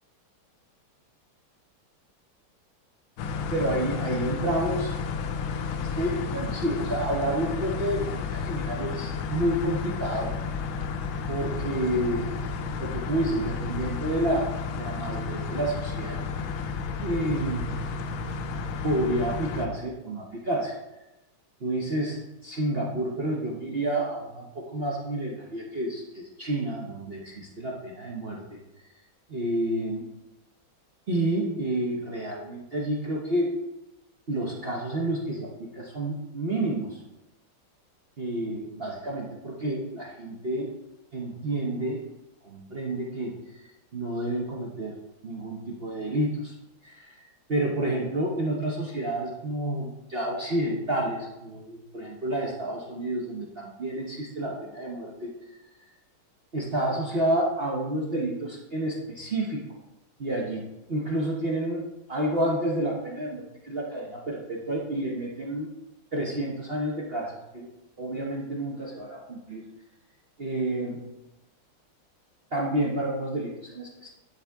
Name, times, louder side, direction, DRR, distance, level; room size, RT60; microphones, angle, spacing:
sound 1, 3.2-19.7, left 5 dB, 75° left, 1.4 m, -32 dB
voice 1, 3.5-4.9 5.4-10.3 11.3-12.3 12.8-14.5 14.7-16.2 17.0-17.8 18.8-20.7 21.6-28.4 29.3-30.1 31.1-33.5 34.3-37.0 38.2-40.7 41.1-42.0 42.4-43.3 43.9-44.9 45.2-46.5 46.8-47.2 47.5-55.3 56.5-59.6 60.2-60.6 60.9-61.8 62.1-65.7 66.1-67.7 68.0-69.6 70.4-71.1 72.5-74.1, right 1 dB, 50° right, -4 dB, 0.7 m, -29 dB
11.0 x 4.2 x 3.5 m, 0.96 s
omnidirectional pair, 2.3 m